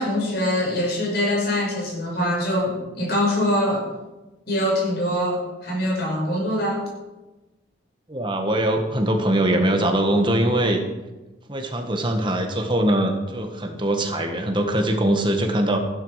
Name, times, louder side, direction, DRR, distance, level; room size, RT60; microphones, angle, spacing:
voice 1, 0.0-3.8 4.5-6.9, left 1 dB, 55° left, -2 dB, 5.9 m, -23 dB
voice 2, 8.1-10.8 11.5-15.8, right 1 dB, 25° right, 4 dB, 1.6 m, -22 dB
15.0 x 11.5 x 5.0 m, 1.1 s
head